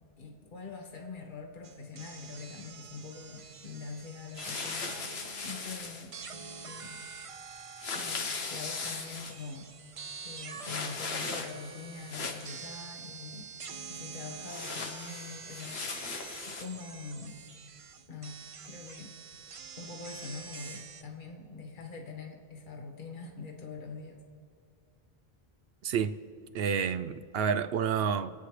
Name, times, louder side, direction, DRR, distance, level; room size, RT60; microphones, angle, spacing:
voice 1, 0.2-5.0 5.4-6.1 6.6-7.0 7.9-9.7 10.2-13.5 13.9-15.8 16.4-17.4 18.1-19.1 19.8-24.2, left 4 dB, 55° left, 1.5 m, -44 dB
sound 1, 1.6-5.7 6.1-21.0, right 5 dB, 40° right, 0.5 m, -46 dB
sound 2, 4.4-6.1 7.8-9.4 10.6-11.7 12.0-12.6 14.5-16.6, left 4 dB, 80° left, 1.3 m, -38 dB
voice 2, 25.8-26.2 26.5-28.3, right 7 dB, 75° right, 0.8 m, -29 dB
27.5 x 9.3 x 3.3 m
omnidirectional pair, 1.0 m